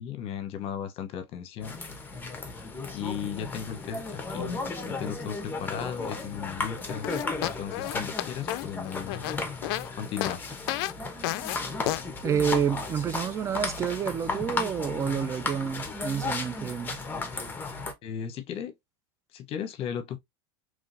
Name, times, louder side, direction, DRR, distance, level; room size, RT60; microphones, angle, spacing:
voice 1, 0.0-1.8 2.9-7.1 7.6-9.3 9.9-10.6 18.0-18.7 19.3-20.2, left 8 dB, 45° left, 0.9 m, -36 dB
sound 1, 1.6-17.9, left 3 dB, 15° left, 1.0 m, -35 dB
sound 2, 7.0-9.9 10.2-10.4 10.7-10.9 11.2-11.6 11.9-12.0, left 16 dB, 60° left, 0.4 m, -31 dB
voice 2, 12.2-17.0, right 8 dB, 20° right, 0.4 m, -29 dB
3.7 x 3.1 x 2.6 m
hypercardioid pair, 110°, 14 cm